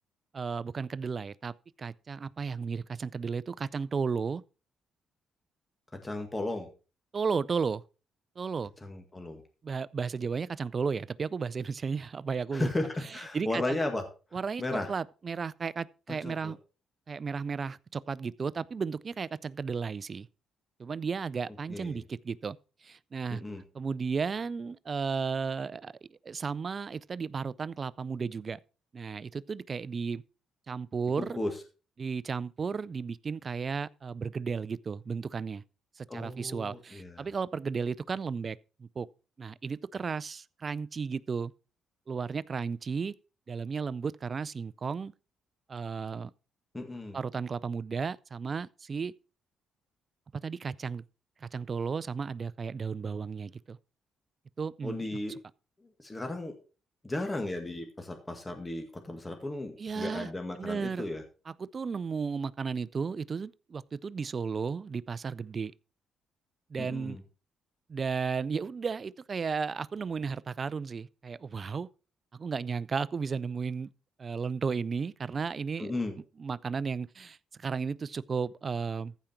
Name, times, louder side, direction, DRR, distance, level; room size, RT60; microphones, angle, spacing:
voice 1, 0.3-4.4 7.1-7.8 8.4-8.7 9.6-12.7 13.3-13.8 14.3-14.6 14.9-16.6 17.1-20.3 20.8-22.6 22.8-23.4 23.7-28.6 28.9-30.2 30.7-31.4 32.0-35.6 36.0-39.1 39.4-41.5 42.1-43.1 43.5-45.1 45.7-46.3 47.1-49.1 50.4-51.0 51.4-53.8 54.6-55.2 59.8-60.3 60.6-61.1 61.6-65.7 66.7-67.2 67.9-71.9 72.3-73.9 74.2-75.9 76.4-79.1, right 5 dB, 40° right, 0.4 m, -34 dB
voice 2, 5.9-6.7 8.8-9.4 12.5-14.0 14.3-14.9 16.2-16.5 21.7-22.0 23.3-23.6 31.2-31.5 36.1-37.3 46.7-47.2 54.8-55.4 56.0-56.5 57.0-61.2 66.8-67.2 75.8-76.1, left 2 dB, 15° left, 1.8 m, -35 dB
14.5 x 5.1 x 4.4 m
cardioid pair, 90°, 0 cm